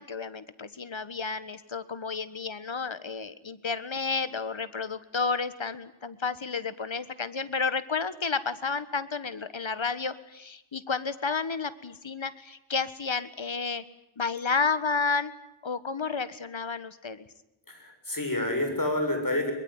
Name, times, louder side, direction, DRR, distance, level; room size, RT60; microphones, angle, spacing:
voice 1, 0.0-13.8 14.2-15.3 15.6-17.3, left 4 dB, 70° left, 13 dB, 1.6 m, -31 dB
voice 2, 17.7-19.5, left 1 dB, 45° left, 5 dB, 7.1 m, -28 dB
23.5 x 21.5 x 9.8 m, 0.86 s
wide cardioid pair, 50°, 48 cm